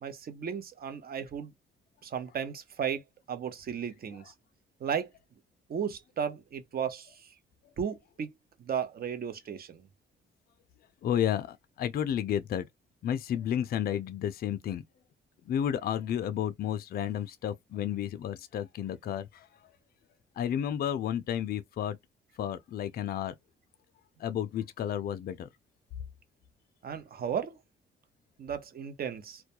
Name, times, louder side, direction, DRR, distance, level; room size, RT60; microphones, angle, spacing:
voice 1, 0.0-1.5 2.0-3.0 3.3-4.3 4.8-5.1 5.7-7.3 7.8-8.3 8.6-9.9 26.8-27.6 28.4-29.4, right 7 dB, 50° right, 0.7 m, -35 dB
voice 2, 11.0-12.7 13.0-14.8 15.5-19.7 20.4-22.0 22.4-23.3 24.2-25.5, left 10 dB, 50° left, 0.4 m, -32 dB
2.2 x 2.2 x 2.8 m
cardioid pair, 90°, 20 cm